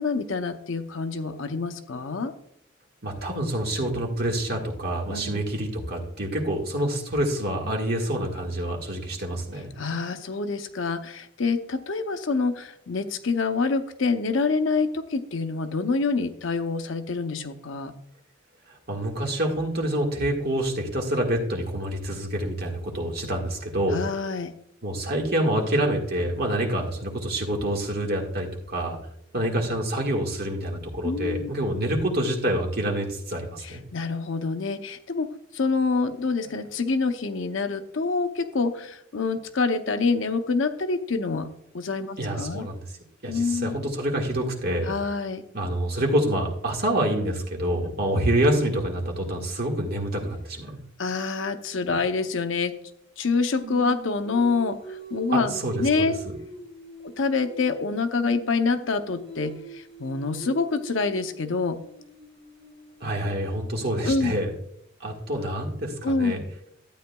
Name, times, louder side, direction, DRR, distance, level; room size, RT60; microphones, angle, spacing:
voice 1, 0.0-2.3 5.1-5.4 9.8-17.9 23.9-24.5 31.0-31.5 33.6-41.5 41.7-42.6 43.3-43.7 44.9-45.4 51.0-52.7 53.2-55.5 55.8-56.1 57.0-61.8 64.0-64.4 66.0-66.4, left 4 dB, 70° left, 9 dB, 0.7 m, -26 dB
voice 2, 3.0-9.7 18.9-24.0 24.8-29.0 29.3-33.8 42.2-42.8 43.2-44.9 45.5-50.8 55.3-56.4 63.0-64.5 65.0-66.4, right 1 dB, 50° right, 0 dB, 1.7 m, -27 dB
Singing, 53.6-57.9 58.1-64.1, right 4 dB, 25° right, 2.6 m, -43 dB
12.5 x 8.8 x 2.3 m, 0.73 s
head